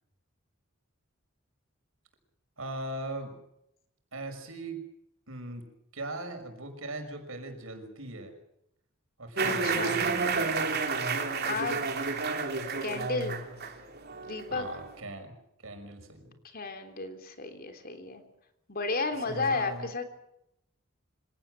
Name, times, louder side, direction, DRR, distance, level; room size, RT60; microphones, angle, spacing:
voice 1, 2.6-3.3 4.1-4.8 5.3-5.6 5.9-8.3 9.2-10.4 14.5-16.4 19.2-19.9, right 2 dB, 80° right, 6 dB, 5.8 m, -40 dB
sound 1, 9.4-15.0, right 4 dB, 50° right, 3.4 m, -30 dB
voice 2, 9.5-10.0 11.5-11.9 12.8-13.4 14.3-14.6 16.4-18.2 18.7-20.1, left 3 dB, 45° left, 7 dB, 3.5 m, -33 dB
26.0 x 17.5 x 7.8 m, 0.79 s
head